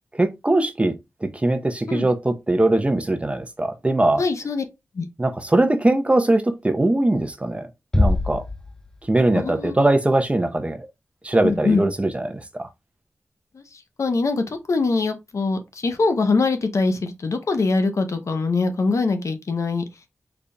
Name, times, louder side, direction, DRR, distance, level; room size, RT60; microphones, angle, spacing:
voice 1, 0.2-4.2 5.2-7.7 7.9-8.4 9.1-10.9 11.2-12.7, right 2 dB, 25° right, 0.7 m, -21 dB
voice 2, 4.2-4.6 4.9-5.0 9.3-9.9 11.4-11.9 13.5-19.8, left 3 dB, 75° left, 0.7 m, -23 dB
Bass drum, 7.9-9.4, left 2 dB, 10° left, 0.4 m, -23 dB
3.9 x 3.4 x 2.2 m
cardioid pair, 55°, 5 cm